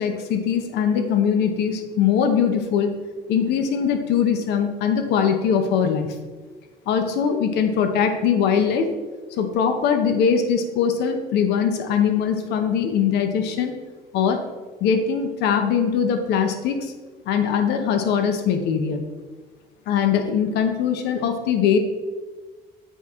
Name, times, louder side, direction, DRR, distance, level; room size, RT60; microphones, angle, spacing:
voice 1, 0.0-2.9 3.3-6.1 6.9-8.9 9.4-13.7 14.1-14.4 14.8-16.9 17.3-19.0 19.9-21.8, left 7 dB, 80° left, 6 dB, 0.9 m, -21 dB
8.2 x 4.6 x 3.6 m, 1.3 s
cardioid pair, 110°, 17 cm